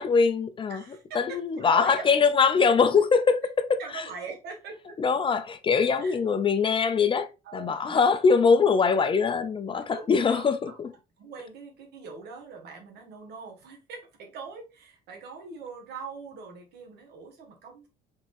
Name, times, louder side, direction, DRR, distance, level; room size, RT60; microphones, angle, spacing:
voice 1, 0.0-0.8 1.1-4.0 5.0-10.9, left 5 dB, 30° left, 0.4 m, -23 dB
voice 2, 0.7-2.2 3.8-4.9 6.0-6.2 7.4-8.2 9.7-10.8 11.2-17.9, right 5 dB, 75° right, 1.6 m, -42 dB
4.2 x 3.5 x 2.5 m
cardioid pair, 110°, 17 cm